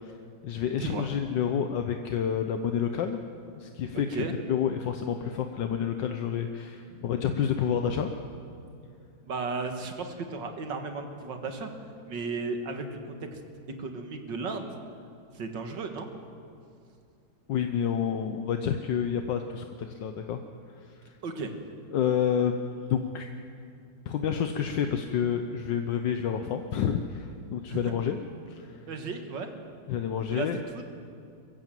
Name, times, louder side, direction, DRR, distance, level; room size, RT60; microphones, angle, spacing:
voice 1, 0.4-3.2 3.5-8.1 17.5-20.4 21.0-21.1 21.9-23.3 24.1-28.2 28.5-28.9 29.9-30.6, left 8 dB, 75° left, 6 dB, 1.5 m, -29 dB
voice 2, 9.3-11.7 12.1-13.0 13.3-13.4 13.8-14.7 15.3-16.1 21.2-21.5 27.7-27.9 28.9-29.5 30.3-30.5 30.7-30.8, right 4 dB, 70° right, 6 dB, 2.3 m, -34 dB
23.5 x 15.0 x 7.7 m, 2.4 s
omnidirectional pair, 2.0 m